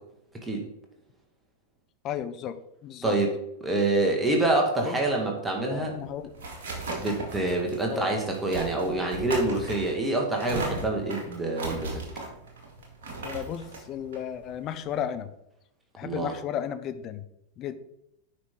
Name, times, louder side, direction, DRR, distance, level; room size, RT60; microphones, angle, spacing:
voice 1, 2.0-3.2 4.8-5.0 5.6-6.3 7.8-8.1 13.2-15.3 16.0-17.2 17.6-17.8, left 9 dB, 35° left, 10 dB, 0.7 m, -34 dB
voice 2, 3.6-5.9 7.0-12.0 16.0-16.3, right 2 dB, 10° right, 1 dB, 1.8 m, -26 dB
sound 1, 5.8-15.1, right 2 dB, 60° right, 2.0 m, -37 dB
9.5 x 5.6 x 3.8 m, 0.80 s
figure-of-eight pair, 90°, 0 cm